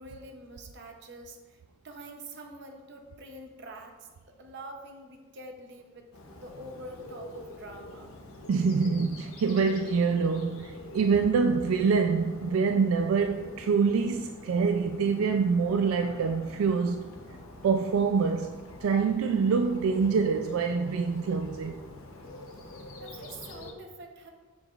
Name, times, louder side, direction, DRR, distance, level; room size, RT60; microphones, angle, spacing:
voice 1, 0.0-6.1 6.4-8.1 22.7-24.3, right 1 dB, 55° right, 0.7 m, -46 dB
Bird, 6.1-23.7, left 2 dB, 80° left, 0.9 m, -45 dB
voice 2, 8.5-17.1 17.6-21.8, right 5 dB, 80° right, 0.3 m, -26 dB
7.0 x 6.8 x 2.4 m
head